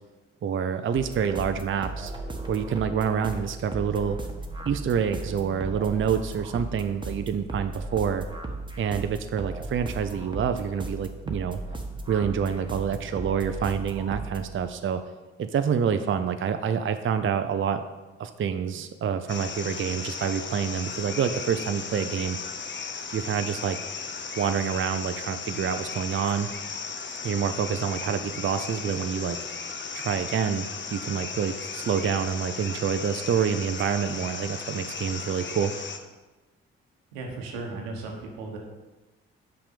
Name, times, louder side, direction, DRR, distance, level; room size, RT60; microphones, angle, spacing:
voice 1, 0.4-2.1 2.5-4.2 4.7-8.3 8.8-11.6 12.1-15.0 15.4-17.8 18.2-22.4 23.1-23.8 24.4-26.5 27.2-29.4 29.9-35.7, right 7 dB, 40° right, 9 dB, 0.6 m, -27 dB
sound 1, 1.0-14.5, right 2 dB, 15° right, 1.4 m, -36 dB
sound 2, 19.3-36.0, left 5 dB, 40° left, 0.9 m, -36 dB
voice 2, 37.1-38.6, right 3 dB, 85° right, 1 dB, 1.3 m, -36 dB
5.9 x 4.9 x 6.7 m, 1.2 s
hypercardioid pair, 45°, 30 cm